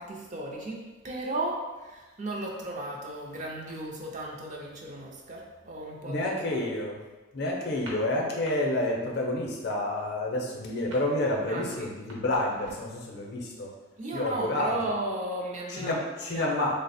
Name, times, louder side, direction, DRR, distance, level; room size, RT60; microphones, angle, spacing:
voice 1, 0.0-6.3 11.5-11.9 14.0-16.0 16.3-16.6, right 1 dB, 35° right, -2 dB, 0.4 m, -35 dB
voice 2, 6.0-7.0 7.3-13.7 14.1-14.8 15.7-16.7, left 1 dB, 50° left, -1 dB, 0.5 m, -29 dB
sound 1, 7.8-8.5 8.8-9.2 9.4-13.0, right 1 dB, 65° right, 0.9 m, -47 dB
3.2 x 2.0 x 4.1 m, 1.2 s
head